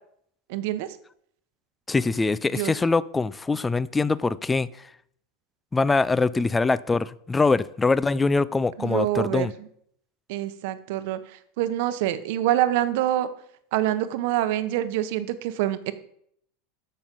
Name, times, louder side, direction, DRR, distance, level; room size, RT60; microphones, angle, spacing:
voice 1, 0.5-1.0 2.5-2.7 8.8-9.7 10.3-13.3 13.7-15.9, right 13 dB, 60° right, 12 dB, 0.9 m, -26 dB
voice 2, 1.9-4.7 5.7-9.5, left 3 dB, 10° left, 19 dB, 0.3 m, -23 dB
13.5 x 6.1 x 5.3 m, 0.68 s
supercardioid pair, 170°, 0 cm